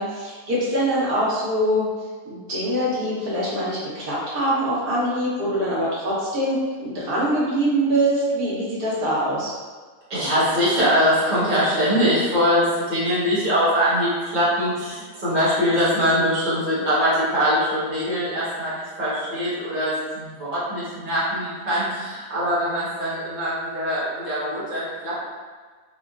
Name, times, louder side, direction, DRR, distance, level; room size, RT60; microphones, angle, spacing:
voice 1, 0.0-1.9 2.2-9.5, right 1 dB, 75° right, -8 dB, 1.6 m, -23 dB
voice 2, 10.1-25.2, equal, 30° right, -11 dB, 1.4 m, -22 dB
4.2 x 2.3 x 2.4 m, 1.4 s
omnidirectional pair, 1.6 m